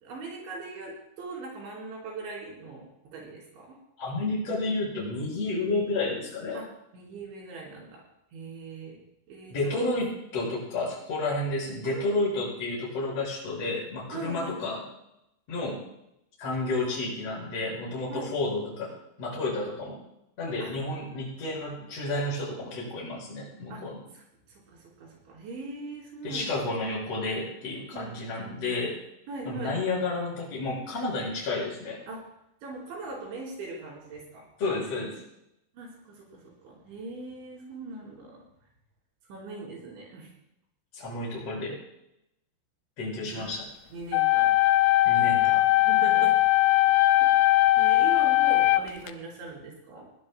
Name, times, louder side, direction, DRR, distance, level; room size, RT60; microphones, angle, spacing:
voice 1, 0.0-3.7 6.5-6.6 6.9-8.0 8.3-9.0 9.3-9.9 11.8-12.1 14.1-14.6 18.1-18.3 20.6-20.8 23.7-23.8 24.5-26.6 27.9-28.2 29.3-29.8 32.1-32.2 32.6-34.5 35.7-38.4 39.3-40.3 43.3-43.4 43.9-44.6 45.8-46.3 47.8-50.1, right 3 dB, 65° right, -2 dB, 6.6 m, -40 dB
voice 2, 4.0-6.6 9.5-14.8 15.5-15.8 16.4-18.9 19.2-20.0 20.4-24.0 26.2-29.0 29.4-32.0 34.6-35.2 40.9-41.8 43.0-43.6 45.0-45.7, left 2 dB, 30° left, -4 dB, 6.6 m, -31 dB
sound 1, 44.1-49.1, left 17 dB, 80° left, 2.9 m, -20 dB
21.5 x 17.5 x 2.2 m, 0.82 s
omnidirectional pair, 6.0 m